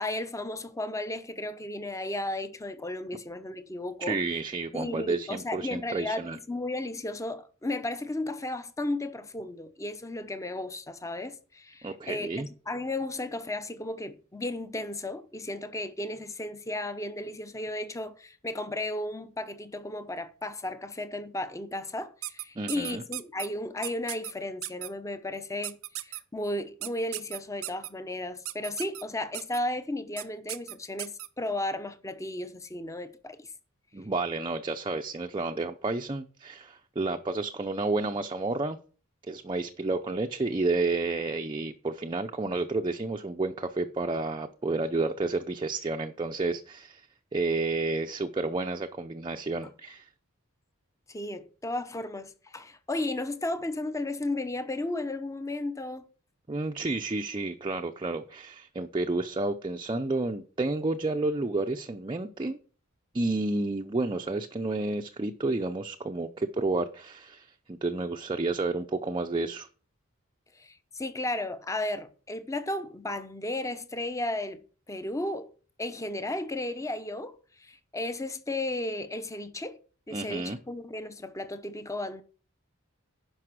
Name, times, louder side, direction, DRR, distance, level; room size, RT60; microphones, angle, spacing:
voice 1, 0.0-4.2 4.7-33.5 51.1-56.1 70.6-75.5 75.8-79.8 80.1-82.2, left 1 dB, 15° left, 0.8 m, -34 dB
voice 2, 4.0-6.4 11.8-12.5 22.6-23.0 33.9-38.8 39.2-47.1 47.3-50.1 56.5-62.6 63.1-69.7 80.1-80.6, right 3 dB, 25° right, 0.5 m, -30 dB
sound 1, 22.2-23.5 23.8-24.3 24.6-24.9 25.6-26.2 26.8-27.9 28.4-29.0 29.3-29.6 30.2-30.3 30.5-31.3, right 16 dB, 75° right, 0.6 m, -36 dB
11.0 x 5.4 x 6.1 m
head